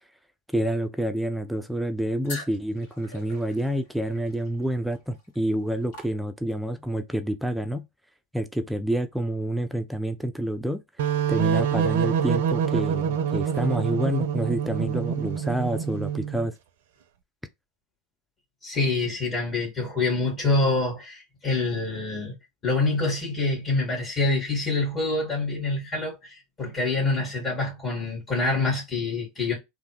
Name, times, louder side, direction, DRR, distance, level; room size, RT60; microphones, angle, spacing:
voice 1, 0.5-7.8 8.3-10.8 11.3-16.5, right 1 dB, 5° right, 0.4 m, -28 dB
sound 1, 2.3-6.7, left 1 dB, 60° left, 1.8 m, -44 dB
sound 2, 11.0-16.5, right 8 dB, 65° right, 0.5 m, -26 dB
voice 2, 18.6-22.3 22.6-29.5, left 3 dB, 30° left, 1.8 m, -26 dB
3.3 x 2.5 x 3.0 m
figure-of-eight pair, 85°, 0 cm